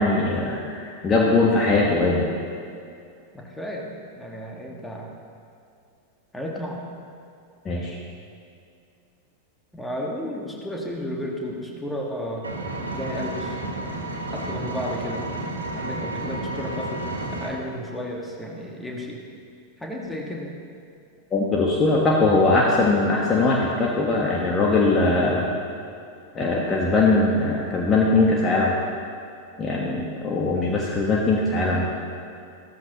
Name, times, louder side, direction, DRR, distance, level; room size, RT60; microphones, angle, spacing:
voice 1, 0.0-2.3 7.6-8.0 21.3-25.5 26.3-28.7 29.6-31.9, left 3 dB, 20° left, -2 dB, 1.4 m, -21 dB
voice 2, 3.3-5.2 6.3-6.9 9.7-12.5 12.9-13.6 14.1-15.3 15.7-17.1 17.4-19.2 19.8-20.6, left 1 dB, 5° left, -1 dB, 1.8 m, -33 dB
Engine, 12.4-17.5, right 2 dB, 75° right, 1.6 m, -31 dB
15.5 x 14.0 x 3.1 m, 2.5 s
figure-of-eight pair, 90°, 0 cm